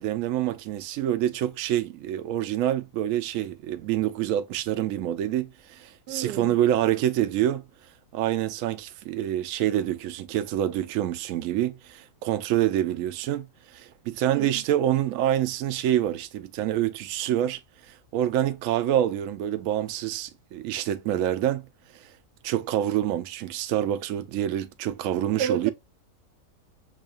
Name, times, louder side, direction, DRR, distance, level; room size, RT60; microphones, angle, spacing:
voice 1, 0.0-7.7 8.1-13.5 13.7-17.6 17.9-21.6 22.4-25.7, right 12 dB, 70° right, 0.8 m, -26 dB
voice 2, 6.1-6.6 14.2-14.6 25.3-25.7, right 8 dB, 85° right, 1.2 m, -31 dB
6.2 x 2.2 x 2.4 m
omnidirectional pair, 1.7 m